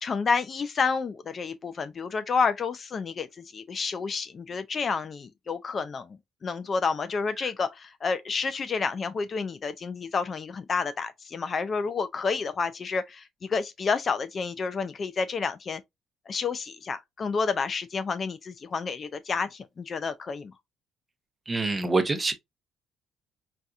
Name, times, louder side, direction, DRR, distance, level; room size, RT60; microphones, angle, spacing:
voice 1, 0.0-6.1 6.4-15.8 16.3-20.5, left 5 dB, 35° left, 0.3 m, -30 dB
voice 2, 21.5-22.3, right 3 dB, 20° right, 0.7 m, -25 dB
4.1 x 2.3 x 2.4 m
cardioid pair, 140°, 0 cm